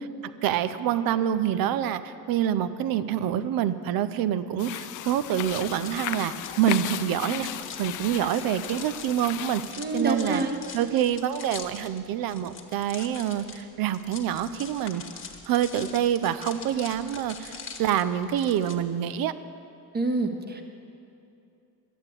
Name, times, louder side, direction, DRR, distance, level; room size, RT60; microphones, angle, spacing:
voice 1, 0.2-7.5 7.8-10.4 10.7-15.0 15.5-19.3, right 10 dB, 65° right, 13 dB, 0.7 m, -26 dB
sound 1, 4.6-9.7, left 12 dB, 55° left, 0.5 m, -35 dB
sound 2, 5.0-18.8, left 6 dB, 30° left, 1.7 m, -44 dB
voice 2, 9.8-10.6 19.9-20.6, right 2 dB, 25° right, 4 dB, 1.5 m, -27 dB
13.0 x 8.9 x 8.3 m, 2.7 s
cardioid pair, 120°, 38 cm